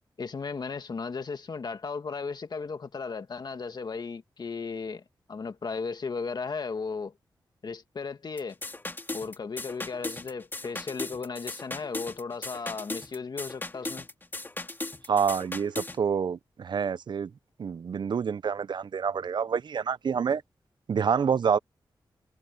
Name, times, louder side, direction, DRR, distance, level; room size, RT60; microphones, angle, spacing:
voice 1, 0.2-5.0 5.3-7.1 7.6-8.6 9.1-14.1, left 4 dB, 55° left, 1.9 m, -35 dB
sound 1, 8.4-16.0, left 2 dB, 25° left, 2.3 m, -37 dB
voice 2, 15.1-17.3 17.6-20.4 20.9-21.6, right 6 dB, 65° right, 0.5 m, -27 dB
cardioid pair, 80°, 9 cm